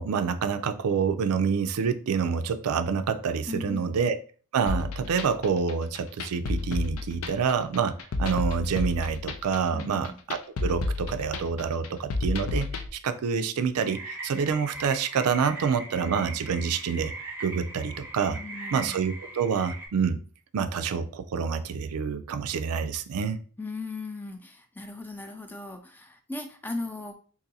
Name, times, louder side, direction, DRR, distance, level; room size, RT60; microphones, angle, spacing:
voice 1, 0.0-4.2 4.5-17.1 17.4-18.4 18.7-20.2 20.5-23.4, right 6 dB, 85° right, 10 dB, 0.4 m, -27 dB
voice 2, 3.5-3.9 9.7-10.2 18.3-19.1 23.6-27.2, left 2 dB, 10° left, 6 dB, 0.3 m, -38 dB
sound 1, 4.7-12.9, left 3 dB, 70° left, 0.4 m, -31 dB
sound 2, 13.8-19.9, right 2 dB, 10° right, 0.7 m, -40 dB
4.0 x 2.6 x 2.7 m, 0.41 s
head